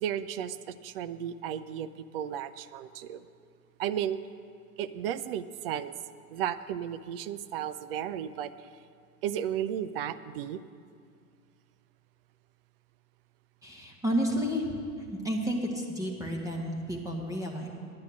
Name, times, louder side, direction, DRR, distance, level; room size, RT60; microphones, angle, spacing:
voice 1, 0.0-3.2 3.8-4.2 4.8-5.9 6.3-8.7 9.2-10.6, right 9 dB, 40° right, 14 dB, 0.4 m, -34 dB
voice 2, 13.6-14.7 15.1-17.7, equal, 5° right, 0 dB, 1.1 m, -31 dB
10.5 x 9.5 x 6.3 m, 2.2 s
hypercardioid pair, 110°, 47 cm